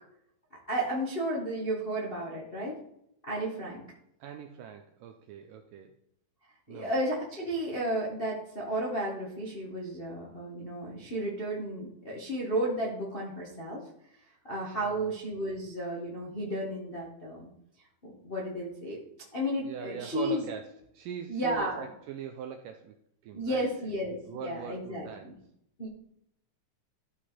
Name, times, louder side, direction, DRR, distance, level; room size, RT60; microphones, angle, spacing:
voice 1, 0.5-2.8 3.3-3.8 6.7-13.8 14.4-17.5 18.0-19.0 19.3-20.4 21.3-21.8 23.3-25.1 25.8-25.9, right 1 dB, 45° left, -4 dB, 0.7 m, -33 dB
voice 2, 4.2-6.0 6.7-7.0 14.3-14.4 14.8-15.1 19.6-23.0 23.2-23.9 24.3-25.4, right 8 dB, 90° right, 6 dB, 1.9 m, -41 dB
13.0 x 5.0 x 4.2 m, 0.75 s
omnidirectional pair, 4.4 m